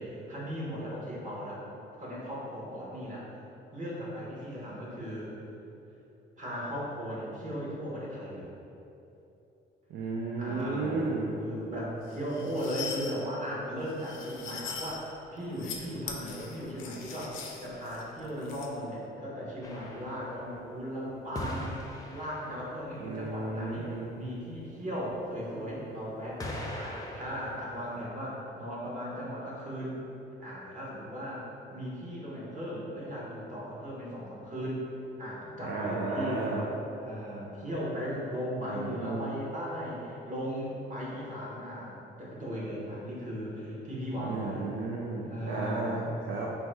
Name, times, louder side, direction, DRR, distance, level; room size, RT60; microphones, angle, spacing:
voice 1, 0.0-1.6 2.0-3.3 3.7-5.3 6.4-8.5 10.4-26.4 26.8-30.0 30.4-34.9 35.2-36.6 37.0-44.7 45.2-45.9, equal, 40° right, -5 dB, 1.2 m, -37 dB
voice 2, 9.9-11.3 23.0-24.1 35.6-36.6 38.6-39.3 44.2-46.6, right 3 dB, 75° right, -3 dB, 0.5 m, -33 dB
sound 1, 12.1-13.1 13.9-14.9 15.4-15.8 16.1-18.7, left 6 dB, 85° left, 0.5 m, -41 dB
sound 2, 19.6-20.8 21.3-22.9 25.2-25.3 26.4-28.0, left 1 dB, 20° left, 0.5 m, -40 dB
4.0 x 2.3 x 4.6 m, 2.9 s
cardioid pair, 90°, 20 cm